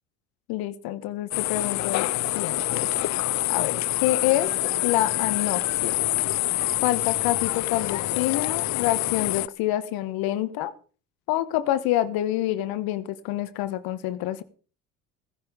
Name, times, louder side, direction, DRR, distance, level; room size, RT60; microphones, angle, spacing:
voice 1, 0.5-2.1 2.3-2.9 3.5-6.0 6.8-10.7 11.3-14.4, left 14 dB, 65° left, 12 dB, 1.3 m, -27 dB
sound 1, 1.3-9.5, left 16 dB, 45° left, 0.6 m, -26 dB
16.0 x 10.5 x 5.0 m, 0.39 s
hypercardioid pair, 70°, 39 cm